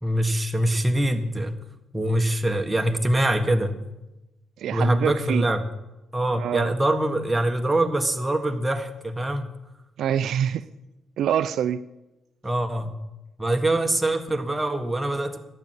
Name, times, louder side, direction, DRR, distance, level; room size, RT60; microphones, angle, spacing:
voice 1, 0.0-1.6 1.9-3.8 4.7-5.7 6.1-9.5 12.4-13.0 13.4-15.4, right 1 dB, 10° right, 4 dB, 1.6 m, -24 dB
voice 2, 4.6-5.5 6.4-6.7 10.0-10.6 11.2-11.8, right 9 dB, 75° right, 12 dB, 0.5 m, -25 dB
12.0 x 7.7 x 9.7 m, 0.98 s
cardioid pair, 90°, 0 cm